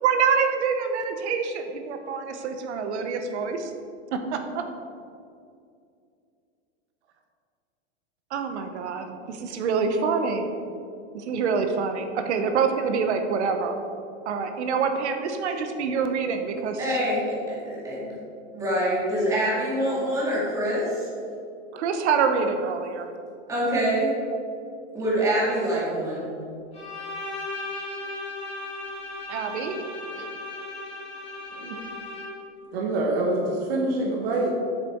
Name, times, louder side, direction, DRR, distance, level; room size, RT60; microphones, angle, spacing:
voice 1, 0.0-3.7 4.1-4.6 8.3-10.4 11.1-13.7 14.3-16.8 21.7-23.1 29.3-29.7 30.2-30.3, right 5 dB, 75° right, 6 dB, 1.1 m, -26 dB
voice 2, 16.8-18.1 18.5-21.1 23.5-24.1 24.9-26.3, right 1 dB, 10° right, -8 dB, 2.0 m, -25 dB
Bowed string instrument, 26.7-32.6, left 2 dB, 15° left, 2.2 m, -36 dB
voice 3, 32.7-34.5, right 2 dB, 60° right, -1 dB, 1.3 m, -26 dB
8.2 x 6.8 x 4.5 m, 2.4 s
supercardioid pair, 165°, 35 cm